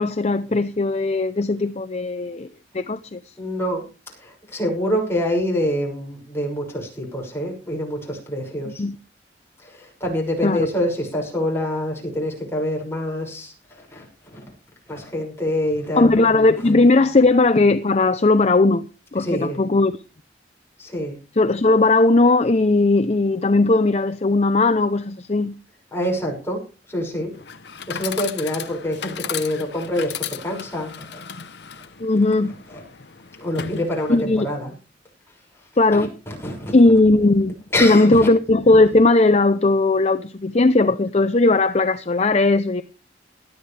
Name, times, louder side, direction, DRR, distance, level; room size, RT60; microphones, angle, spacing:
voice 1, 0.0-2.5 2.7-3.2 8.8-9.0 10.4-10.7 16.0-18.9 19.1-19.9 21.4-25.6 32.0-32.5 34.1-34.5 35.8-36.1 36.7-37.5 37.8-42.8, left 2 dB, 35° left, 0.6 m, -17 dB
voice 2, 3.4-8.8 9.6-14.5 14.9-16.1 16.6-16.7 19.1-19.6 20.8-21.2 25.9-26.6 26.9-27.3 27.9-31.2 32.7-32.8 33.4-34.7 35.9-36.8 37.7-38.3, left 1 dB, 15° left, 6.1 m, -26 dB
Chatter / Coin (dropping), 27.3-34.4, left 7 dB, 70° left, 0.9 m, -35 dB
18.5 x 12.5 x 3.4 m
head